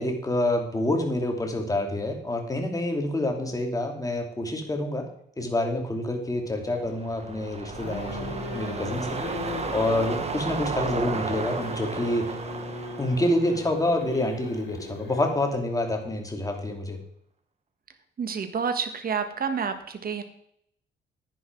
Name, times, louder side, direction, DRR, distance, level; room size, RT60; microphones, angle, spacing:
voice 1, 0.0-5.1 5.4-9.2 9.7-12.4 13.0-17.0, left 1 dB, 15° left, 3 dB, 2.8 m, -27 dB
sound 1, 6.7-15.1 15.5-15.6, right 4 dB, 30° right, 1.5 m, -34 dB
sound 2, 7.7-15.4, left 3 dB, 70° left, 3.0 m, -38 dB
voice 2, 18.2-20.2, right 6 dB, 50° right, 8 dB, 1.7 m, -29 dB
10.5 x 10.0 x 4.7 m, 0.69 s
cardioid pair, 90°, 20 cm